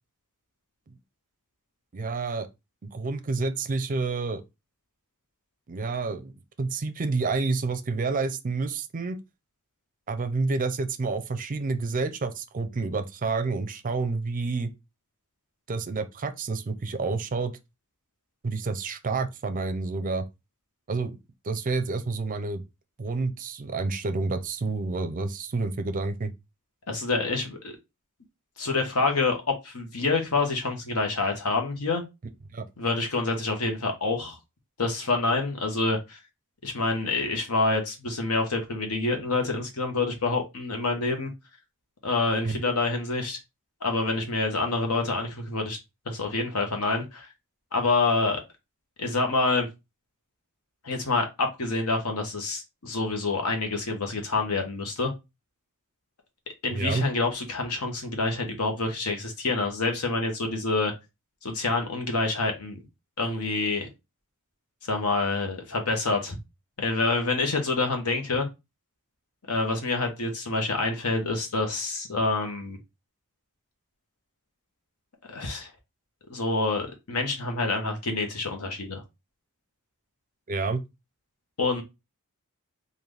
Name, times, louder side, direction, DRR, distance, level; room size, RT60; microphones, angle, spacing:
voice 1, 1.9-2.5 2.8-4.4 5.7-6.3 6.6-9.2 10.1-14.7 15.7-17.5 18.4-20.2 20.9-21.2 21.4-22.6 23.0-26.3 32.5-32.7 42.4-42.6 56.7-57.1 80.5-80.8, right 3 dB, 40° right, 0.5 m, -29 dB
voice 2, 26.9-27.7 28.6-29.4 29.6-32.0 32.8-34.4 34.8-36.2 36.6-41.3 42.0-43.4 43.8-45.8 46.1-47.3 47.7-48.4 49.0-49.7 50.8-55.1 56.6-60.9 61.4-62.8 63.2-63.9 64.8-66.4 66.8-68.5 69.5-72.8 75.3-75.7 76.3-79.0 81.6-81.8, left 3 dB, 80° left, 1.1 m, -27 dB
3.9 x 2.6 x 3.3 m
head